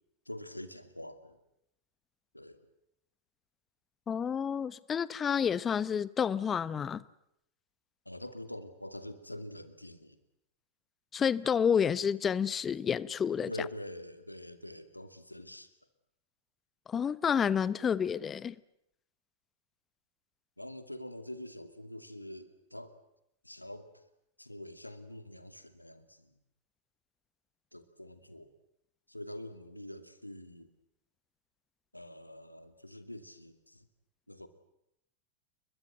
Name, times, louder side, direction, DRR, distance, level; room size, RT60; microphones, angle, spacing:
voice 1, 0.3-1.4 2.3-2.6 8.1-10.2 13.5-15.7 20.6-23.0 23.4-23.9 24.4-26.3 27.7-28.5 29.1-30.7 31.9-33.9 34.3-34.5, left 1 dB, 85° left, 2.4 m, -45 dB
voice 2, 4.1-7.0 11.1-13.5 16.9-18.6, left 7 dB, 20° left, 1.0 m, -29 dB
29.5 x 22.5 x 8.0 m
figure-of-eight pair, 90°, 0 cm